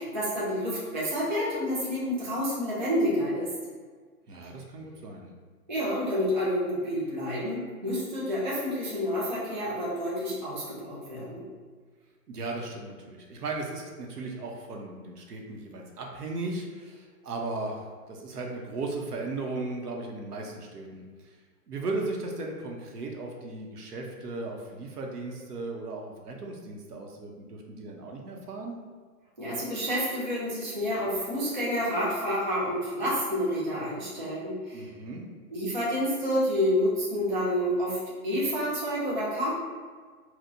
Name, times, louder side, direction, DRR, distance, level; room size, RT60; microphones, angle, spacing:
voice 1, 0.0-3.5 5.7-11.4 29.4-34.8 35.5-38.0 38.2-39.5, equal, 30° right, -8 dB, 0.4 m, -29 dB
voice 2, 4.3-5.3 12.3-21.4 21.7-28.8 34.7-35.2, right 2 dB, 75° right, 1 dB, 0.8 m, -36 dB
4.3 x 2.2 x 2.6 m, 1.6 s
hypercardioid pair, 170°, 47 cm